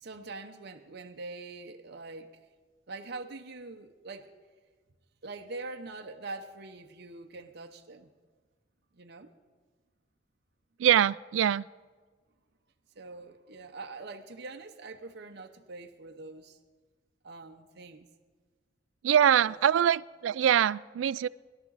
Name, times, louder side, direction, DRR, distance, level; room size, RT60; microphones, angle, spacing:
voice 1, 0.0-2.3 2.9-4.3 5.2-8.1 8.9-9.3 12.9-16.6 17.2-18.1 19.4-19.6, right 3 dB, 60° right, 0.9 m, -43 dB
voice 2, 10.8-11.7 19.0-21.3, right 9 dB, 85° right, 0.3 m, -24 dB
20.5 x 12.5 x 4.0 m
head